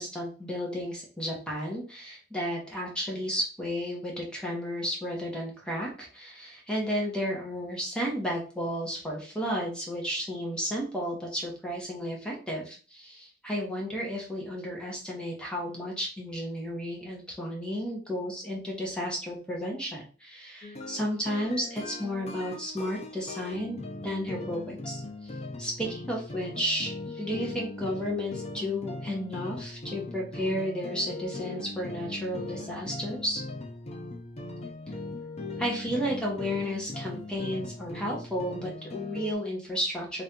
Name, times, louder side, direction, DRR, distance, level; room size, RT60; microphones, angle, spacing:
voice 1, 0.0-23.8 24.0-25.3 25.6-33.4 35.6-40.2, equal, 5° left, -2 dB, 1.2 m, -33 dB
sound 1, 20.6-39.3, left 2 dB, 35° left, 0.6 m, -39 dB
3.3 x 2.8 x 3.7 m, 0.36 s
head